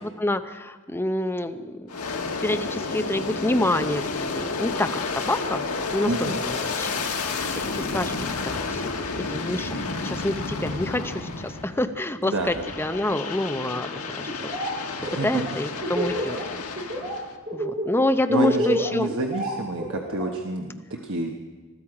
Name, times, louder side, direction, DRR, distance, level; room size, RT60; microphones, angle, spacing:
voice 1, 0.0-2.0 2.4-5.6 5.9-7.1 7.5-8.1 8.4-14.9 15.2-16.4 17.5-19.1, left 1 dB, 10° left, 8 dB, 0.6 m, -27 dB
Aircraft, 1.9-11.9 12.4-17.3, left 4 dB, 80° left, 1.5 m, -31 dB
voice 2, 6.1-6.4 12.2-12.6 15.0-15.3 18.3-21.3, right 2 dB, 60° right, 3 dB, 1.1 m, -29 dB
Laughter, 14.3-14.7 15.0-16.4 16.8-17.1 17.5-20.3, right 1 dB, 35° right, 4.7 m, -29 dB
20.5 x 13.5 x 4.9 m, 1.3 s
head